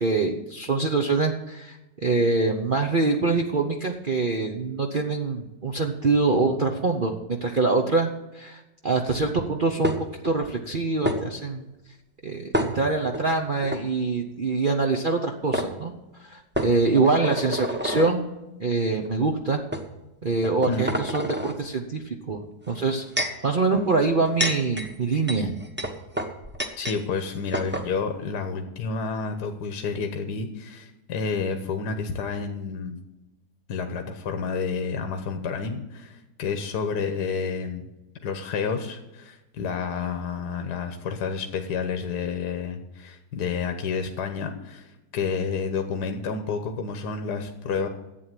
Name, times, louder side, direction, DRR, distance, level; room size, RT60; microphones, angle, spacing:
voice 1, 0.0-10.0 10.2-11.7 12.2-15.9 16.2-18.3 18.6-19.6 20.2-25.5, right 3 dB, 40° right, 3 dB, 0.9 m, -24 dB
sound 1, 9.8-10.3 11.0-11.2 12.5-13.2 13.6-13.8 15.1-15.2 15.5-15.7 16.5-18.1 18.9-19.1 19.7-19.9 20.4-21.6 22.7-23.4 24.1-27.0 27.3-27.4 27.5-27.9, equal, 5° right, 1.0 m, -28 dB
voice 2, 26.8-33.0 33.7-37.8 38.2-47.9, left 5 dB, 75° left, 6 dB, 1.6 m, -30 dB
11.5 x 8.5 x 7.6 m, 1.0 s
omnidirectional pair, 1.8 m